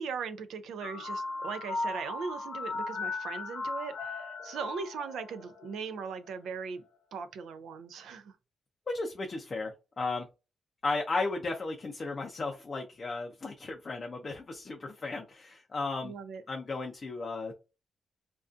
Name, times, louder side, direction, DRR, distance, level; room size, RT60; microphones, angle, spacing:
voice 1, 0.0-6.8 7.1-8.3 16.0-16.4, right 5 dB, 85° right, 0.3 m, -39 dB
sound 1, 0.8-5.9, left 3 dB, 85° left, 0.6 m, -37 dB
voice 2, 8.9-10.3 10.8-16.1 16.5-17.5, left 3 dB, 30° left, 0.4 m, -35 dB
2.4 x 2.2 x 2.4 m
wide cardioid pair, 145°, 0 cm